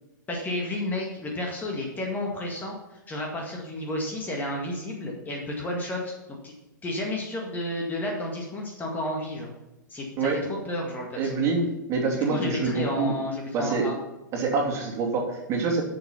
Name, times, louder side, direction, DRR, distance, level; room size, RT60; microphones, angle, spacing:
voice 1, 0.3-2.8 3.1-6.5 6.8-9.5 9.9-11.4 12.3-13.9, left 1 dB, 15° left, 0 dB, 1.9 m, -31 dB
voice 2, 11.2-13.1 13.5-13.9 14.3-15.8, right 4 dB, 30° right, -1 dB, 2.8 m, -26 dB
11.5 x 7.0 x 5.8 m, 0.99 s
figure-of-eight pair, 100°, 10 cm